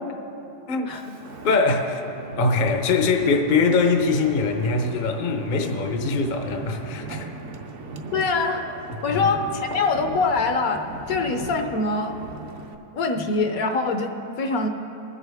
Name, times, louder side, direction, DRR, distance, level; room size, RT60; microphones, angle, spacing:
voice 1, 0.7-1.2 1.4-2.0 2.4-7.3 9.1-9.2, left 4 dB, 45° left, 5 dB, 0.7 m, -22 dB
Wind, 0.9-12.7, right 3 dB, 55° right, 0.9 m, -38 dB
voice 2, 8.1-8.7 9.0-12.2 12.9-14.7, left 3 dB, 65° left, 5 dB, 1.1 m, -24 dB
22.5 x 8.1 x 3.5 m, 2.9 s
omnidirectional pair, 1.8 m